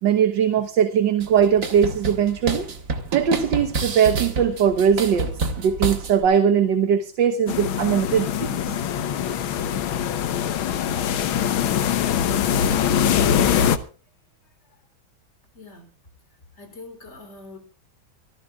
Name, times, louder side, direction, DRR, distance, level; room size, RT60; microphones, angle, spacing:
voice 1, 0.0-2.7 3.1-8.8, right 8 dB, 65° right, 8 dB, 1.7 m, -20 dB
sound 1, 1.2-6.2, right 4 dB, 45° right, 1.9 m, -29 dB
sound 2, 7.5-13.8, left 9 dB, 90° left, 1.8 m, -22 dB
voice 2, 14.4-14.8 15.5-15.9 16.5-17.6, left 3 dB, 35° left, 5 dB, 3.6 m, -45 dB
25.0 x 14.0 x 2.4 m, 0.38 s
omnidirectional pair, 2.1 m